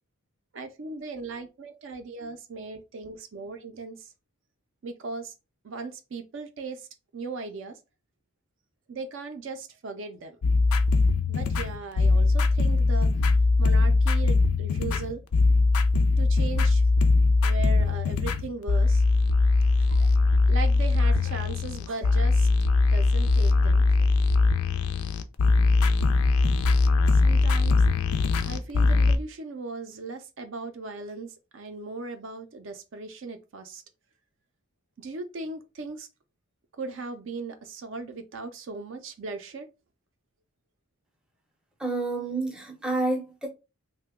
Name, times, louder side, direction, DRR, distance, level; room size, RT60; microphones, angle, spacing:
voice 1, 0.5-4.1 4.8-5.3 5.6-6.9 7.1-7.8 8.9-10.4 11.3-13.1 13.6-15.2 16.2-16.8 17.4-19.0 19.9-20.1 20.5-22.5 22.8-24.1 27.1-27.8 28.4-33.8 35.0-36.1 36.8-39.7, right 3 dB, 60° right, 0.4 m, -38 dB
sound 1, 10.4-29.2, left 3 dB, 75° left, 0.4 m, -21 dB
voice 2, 41.8-43.5, right 2 dB, 5° right, 0.5 m, -29 dB
2.8 x 2.1 x 3.4 m
head